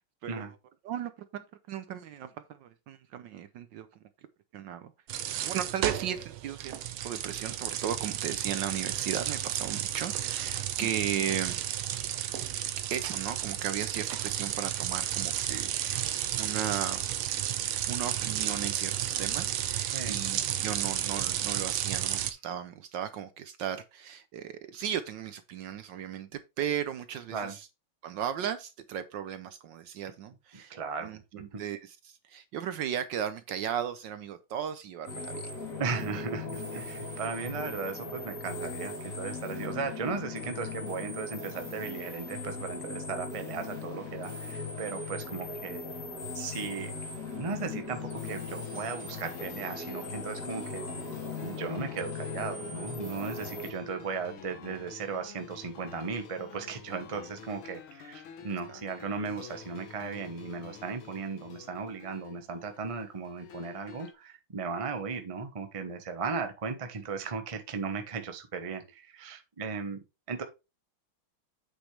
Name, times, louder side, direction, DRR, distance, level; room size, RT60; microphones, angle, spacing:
voice 1, 0.8-3.9 4.5-4.9 5.4-6.7 7.0-11.6 12.9-17.1 17.9-27.7 28.0-35.5 47.5-47.6 58.7-58.8, right 9 dB, 70° right, 1.2 m, -36 dB
bike sounds, 5.1-22.3, right 11 dB, 90° right, 1.7 m, -32 dB
voice 2, 30.7-31.6 35.8-45.8 46.3-46.9 47.4-50.8 51.4-70.0 70.3-70.4, right 5 dB, 25° right, 0.7 m, -36 dB
sound 1, 35.1-53.7, left 3 dB, 40° left, 3.3 m, -39 dB
sound 2, 47.9-64.1, left 7 dB, 75° left, 2.0 m, -49 dB
8.2 x 6.5 x 3.3 m
omnidirectional pair, 2.3 m